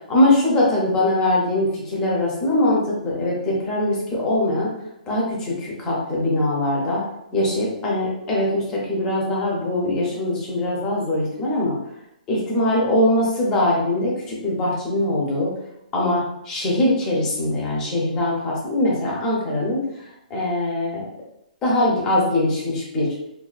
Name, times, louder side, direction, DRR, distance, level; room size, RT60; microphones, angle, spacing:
voice 1, 0.1-7.0 7.3-11.8 12.3-15.5 15.9-21.1 21.6-23.1, left 1 dB, 10° left, -4 dB, 0.4 m, -22 dB
2.3 x 2.3 x 2.3 m, 0.79 s
hypercardioid pair, 175°, 5 cm